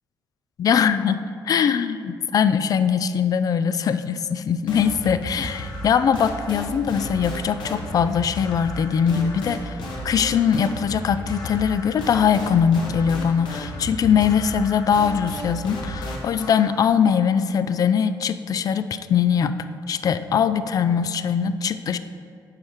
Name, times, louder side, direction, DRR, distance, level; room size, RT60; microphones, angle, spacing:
voice 1, 0.6-19.5 19.9-22.0, left 7 dB, 50° left, 12 dB, 0.3 m, -21 dB
sound 1, 4.7-16.7, equal, 75° left, 1.1 m, -33 dB
7.1 x 4.5 x 4.9 m, 2.3 s
cardioid pair, 90°, 8 cm